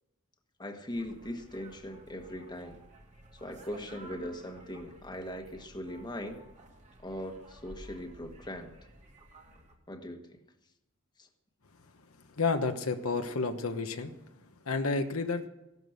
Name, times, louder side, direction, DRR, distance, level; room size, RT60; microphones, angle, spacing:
voice 1, 0.6-2.8 3.4-6.4 7.0-8.8 9.9-10.2 11.2-11.3, left 1 dB, 20° left, 5 dB, 1.4 m, -40 dB
sound 1, 0.9-9.7, right 1 dB, 35° right, 2.3 m, -53 dB
voice 2, 12.4-14.1 14.7-15.4, left 4 dB, 70° left, 6 dB, 1.1 m, -30 dB
16.0 x 12.0 x 6.4 m, 0.96 s
head